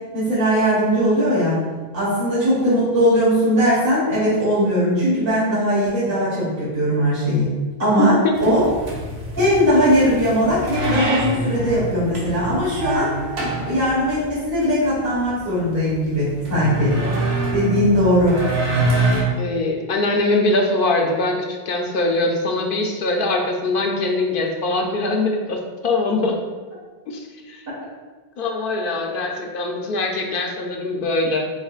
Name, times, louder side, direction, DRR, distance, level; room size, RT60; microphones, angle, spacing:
voice 1, 0.1-1.6 1.9-8.1 8.4-8.6 9.4-13.1 13.7-17.0 17.5-18.4, equal, 65° right, -11 dB, 1.8 m, -19 dB
sound 1, 8.3-19.2, right 1 dB, 80° right, 1.3 m, -25 dB
voice 2, 19.4-26.4 27.1-27.6 28.4-31.5, left 2 dB, 65° left, 2 dB, 0.7 m, -22 dB
4.8 x 4.2 x 2.4 m, 1.3 s
omnidirectional pair, 1.0 m